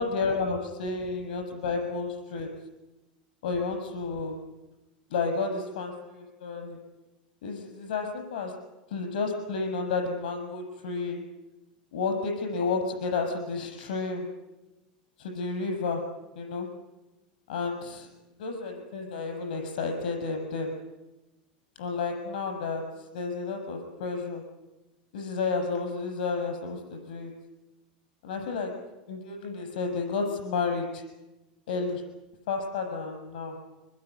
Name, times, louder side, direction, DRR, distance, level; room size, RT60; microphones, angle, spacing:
voice 1, 0.0-2.5 3.4-4.4 5.1-6.8 7.4-8.5 8.9-11.2 11.9-14.3 15.2-16.0 16.4-16.7 17.5-18.1 18.4-20.7 21.8-22.8 23.1-24.4 25.1-27.3 28.2-28.7 29.1-31.0 31.7-32.0 32.5-33.5, left 4 dB, 75° left, 4 dB, 7.2 m, -31 dB
24.0 x 20.5 x 9.7 m, 1.0 s
hypercardioid pair, 100°, 5 cm